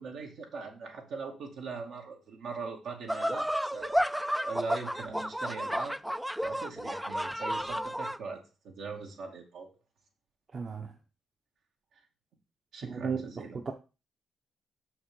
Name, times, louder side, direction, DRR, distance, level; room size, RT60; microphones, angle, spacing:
voice 1, 0.0-4.0 4.4-6.0 6.4-9.7 12.7-13.6, right 4 dB, 80° right, 2.4 m, -41 dB
sound 1, 3.1-8.2, equal, 5° right, 0.4 m, -32 dB
voice 2, 10.5-10.9 12.8-13.2 13.5-13.7, right 5 dB, 45° right, 1.1 m, -34 dB
6.4 x 5.9 x 5.5 m
cardioid pair, 75°, 0 cm